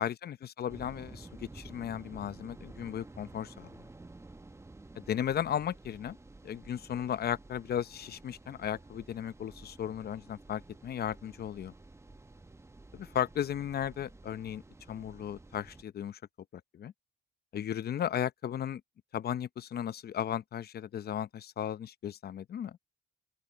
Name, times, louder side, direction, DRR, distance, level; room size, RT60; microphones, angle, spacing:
voice 1, 0.0-3.7 5.0-6.2 6.4-11.7 12.9-14.6 14.9-16.2 16.5-16.9 17.5-18.8 19.1-22.8, left 9 dB, 55° left, 0.7 m, -35 dB
sound 1, 0.7-15.8, right 2 dB, 15° right, 0.9 m, -52 dB
open air
cardioid pair, 90°, 20 cm